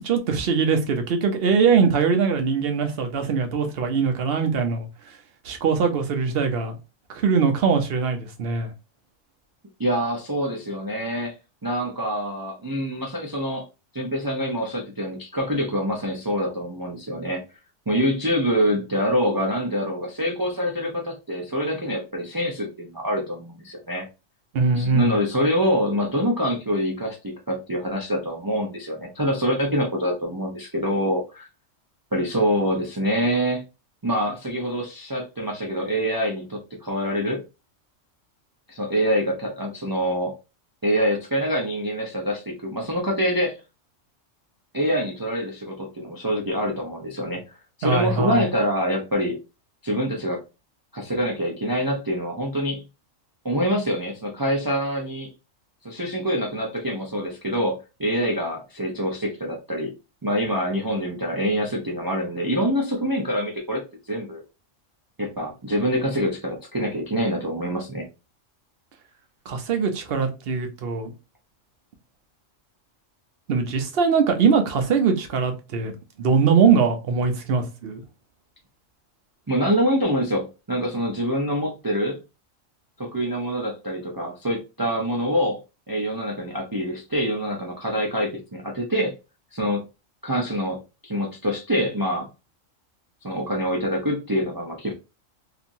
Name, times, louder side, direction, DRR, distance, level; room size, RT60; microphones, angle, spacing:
voice 1, 0.0-4.9 5.4-6.8 7.1-8.7 24.5-25.1 47.8-48.5 69.5-71.1 73.5-75.9 76.2-78.0, right 5 dB, 55° right, 0.8 m, -21 dB
voice 2, 9.8-11.3 11.6-13.6 13.9-17.4 17.9-24.0 24.7-31.5 32.1-33.6 34.0-37.4 38.7-40.3 40.8-43.6 44.7-49.4 49.8-50.4 50.9-52.8 53.4-55.3 55.8-59.9 60.2-63.8 64.1-64.4 65.2-68.0 79.5-82.2 83.0-85.6 85.9-89.1 89.5-89.8 90.2-90.8 91.0-92.3 93.2-94.9, equal, 30° right, 0.4 m, -25 dB
2.8 x 2.5 x 2.6 m
omnidirectional pair, 1.3 m